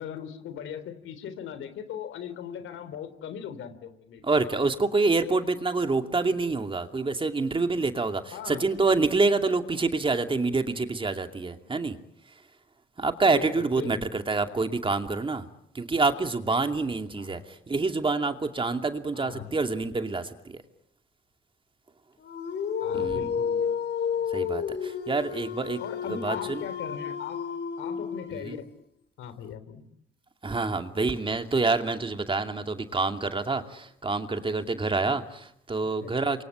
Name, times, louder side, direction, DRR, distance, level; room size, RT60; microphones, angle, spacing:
voice 1, 0.0-4.3 8.3-8.6 11.7-11.8 13.3-13.5 13.8-14.1 17.1-17.4 19.1-19.6 22.8-23.7 24.1-24.3 25.8-27.4 27.8-28.6 29.2-29.8 35.8-36.2, left 8 dB, 80° left, 12 dB, 3.8 m, -39 dB
voice 2, 4.2-12.0 13.0-15.4 15.7-20.6 22.9-23.3 24.3-26.7 28.3-28.6 30.4-36.4, right 3 dB, 25° right, 6 dB, 2.5 m, -27 dB
Dog, 22.2-28.6, left 7 dB, 60° left, 3.9 m, -31 dB
28.5 x 24.0 x 8.8 m, 0.77 s
cardioid pair, 90°, 20 cm